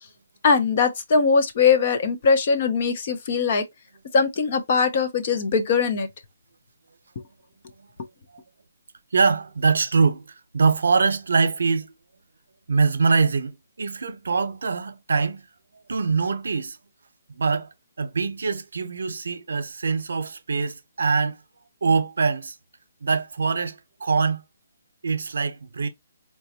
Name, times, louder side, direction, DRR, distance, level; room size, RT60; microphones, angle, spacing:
voice 1, 0.4-3.6 4.1-6.1, left 5 dB, 35° left, 0.6 m, -21 dB
voice 2, 9.1-10.2 10.5-11.9 12.7-15.4 15.9-16.8 17.3-17.7 18.0-21.4 21.8-22.5 23.0-24.4 25.0-25.9, right 4 dB, 75° right, 0.7 m, -23 dB
4.1 x 2.2 x 2.8 m
hypercardioid pair, 170°, 0 cm